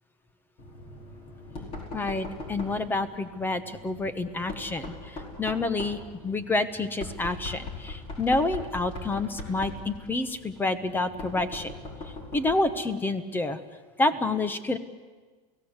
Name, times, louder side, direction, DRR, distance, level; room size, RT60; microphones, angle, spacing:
Knock, 0.6-12.8, left 2 dB, 30° left, 4.8 m, -41 dB
voice 1, 1.9-11.7 12.3-13.6 14.0-14.8, left 2 dB, 10° left, 12 dB, 1.1 m, -28 dB
30.0 x 17.0 x 8.2 m, 1.4 s
supercardioid pair, 150°, 19 cm